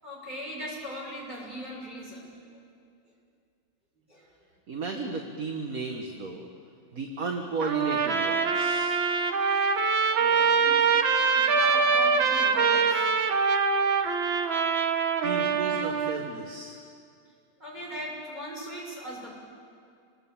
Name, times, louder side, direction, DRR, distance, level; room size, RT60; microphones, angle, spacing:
voice 1, 0.0-2.4 4.1-4.3 10.0-13.4 17.6-19.3, equal, 20° right, -3 dB, 6.9 m, -40 dB
voice 2, 4.7-6.5 6.9-9.0 15.2-16.8, right 4 dB, 45° right, 3 dB, 1.8 m, -34 dB
Trumpet, 7.6-16.2, right 5 dB, 70° right, 2.1 m, -24 dB
28.0 x 20.0 x 8.8 m, 2.3 s
omnidirectional pair, 2.2 m